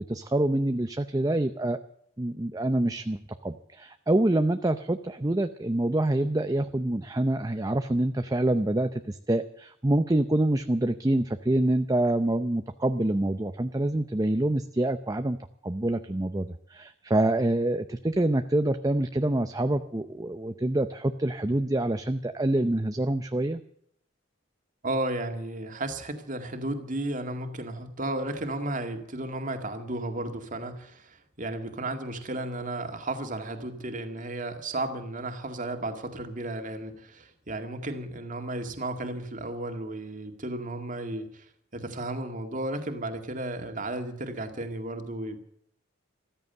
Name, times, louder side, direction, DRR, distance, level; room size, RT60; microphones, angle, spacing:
voice 1, 0.0-1.8 2.2-15.4 15.6-23.6, right 1 dB, 20° right, 0.6 m, -26 dB
voice 2, 24.8-41.5 41.7-45.4, right 2 dB, 40° right, 2.1 m, -34 dB
14.5 x 13.5 x 6.7 m
head